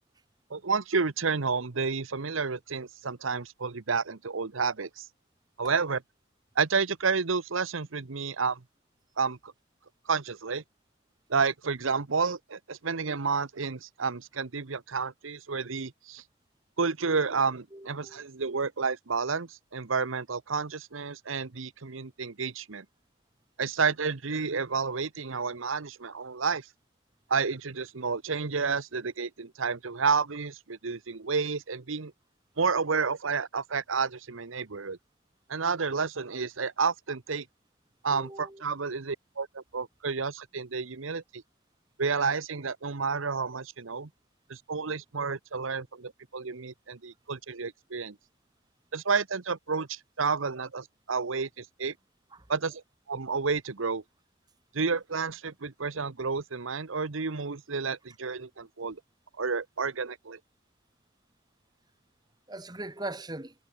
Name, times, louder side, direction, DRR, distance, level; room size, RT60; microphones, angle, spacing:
voice 1, 0.5-5.1 5.6-6.0 6.6-8.6 9.2-9.5 10.1-10.6 11.3-16.2 16.8-22.8 23.6-26.7 27.3-32.1 32.6-35.0 35.5-37.4 38.0-41.4 42.0-44.1 44.5-48.2 48.9-51.9 52.5-52.8 53.1-54.0 54.7-59.0 59.4-60.4, right 5 dB, 85° right, 1.0 m, -30 dB
voice 2, 17.7-18.2 38.1-38.6 52.3-52.5 62.5-63.5, right 2 dB, 20° right, 2.0 m, -40 dB
head